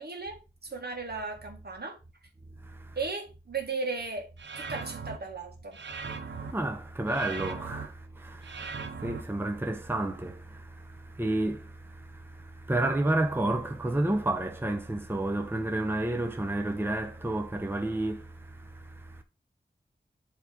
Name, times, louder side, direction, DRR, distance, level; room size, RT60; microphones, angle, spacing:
voice 1, 0.0-2.0 3.0-5.8, right 4 dB, 65° right, 1.8 m, -36 dB
voice 2, 2.6-3.0 6.3-19.2, right 1 dB, 10° right, 0.8 m, -31 dB
sound 1, 4.4-5.2 5.7-6.5 7.1-7.9 8.4-9.2, right 5 dB, 85° right, 0.9 m, -38 dB
8.1 x 3.5 x 5.0 m
wide cardioid pair, 55°, 18 cm